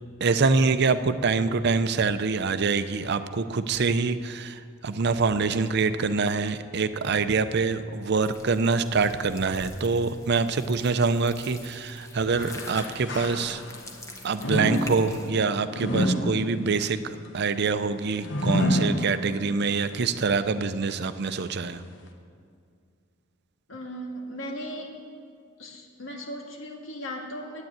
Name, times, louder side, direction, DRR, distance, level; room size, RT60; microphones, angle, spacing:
voice 1, 0.2-13.6 14.2-21.8, right 4 dB, 60° right, 11 dB, 0.6 m, -25 dB
sound 1, 8.2-15.3, left 1 dB, 15° left, 1.2 m, -45 dB
sound 2, 12.3-13.9 14.4-19.7 20.1-20.2 21.1-21.2, equal, 65° left, 1.1 m, -29 dB
voice 2, 23.7-24.9 25.6-27.7, equal, 80° left, 1 dB, 1.9 m, -37 dB
9.7 x 9.1 x 9.1 m, 2.2 s
head